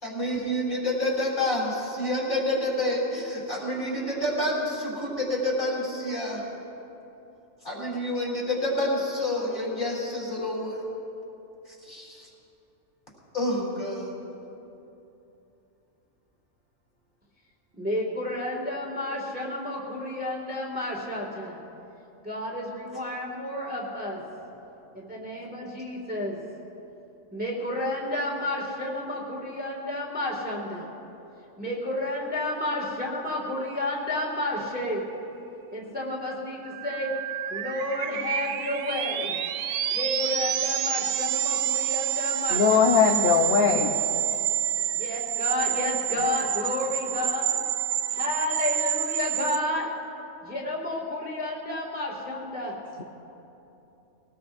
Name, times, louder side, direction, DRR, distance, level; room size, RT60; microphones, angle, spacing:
voice 1, 0.0-6.4 7.6-10.8 11.7-12.3 13.3-14.1 24.9-25.0, left 1 dB, 35° left, -5 dB, 4.2 m, -28 dB
voice 2, 17.7-21.6 22.2-24.2 24.9-26.4 27.3-30.9 31.6-35.0 35.7-37.1 37.5-39.3 39.9-43.0 44.9-47.6 48.1-49.9 50.4-52.7, left 1 dB, 5° right, -4 dB, 2.1 m, -31 dB
sound 1, 36.6-49.6, right 12 dB, 75° right, 0.9 m, -28 dB
voice 3, 42.5-44.0, left 6 dB, 50° left, 2 dB, 0.9 m, -20 dB
22.5 x 19.0 x 2.6 m, 2.9 s
omnidirectional pair, 1.4 m